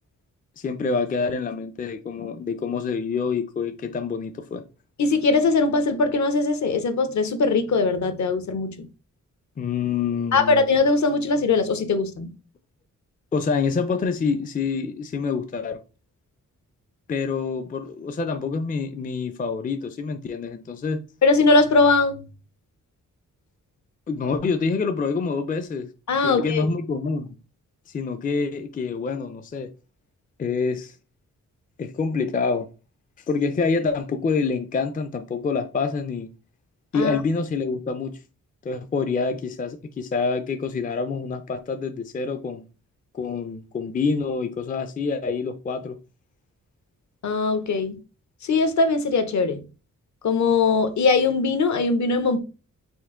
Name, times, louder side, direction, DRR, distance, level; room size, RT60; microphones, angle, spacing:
voice 1, 0.6-4.6 9.6-10.6 13.3-15.8 17.1-21.0 24.1-25.9 26.2-27.3 27.9-29.7 30.4-30.9 31.8-32.7 33.3-36.3 36.9-38.1 38.6-42.6 43.1-46.0, left 4 dB, 25° left, 0.4 m, -26 dB
voice 2, 5.0-8.9 10.3-12.3 21.2-22.2 26.1-26.7 36.9-37.2 47.2-48.0 48.4-49.6 50.2-52.4, left 3 dB, 65° left, 0.7 m, -21 dB
4.4 x 2.4 x 3.6 m
wide cardioid pair, 120°, 31 cm